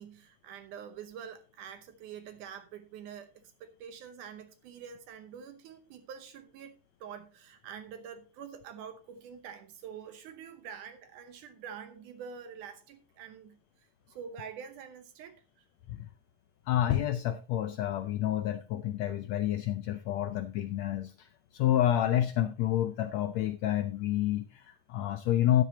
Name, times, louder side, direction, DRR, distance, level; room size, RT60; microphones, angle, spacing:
voice 1, 0.0-15.7, right 7 dB, 75° right, 2.4 m, -46 dB
voice 2, 16.7-25.6, left 12 dB, 80° left, 1.6 m, -29 dB
12.5 x 10.5 x 2.8 m
omnidirectional pair, 3.7 m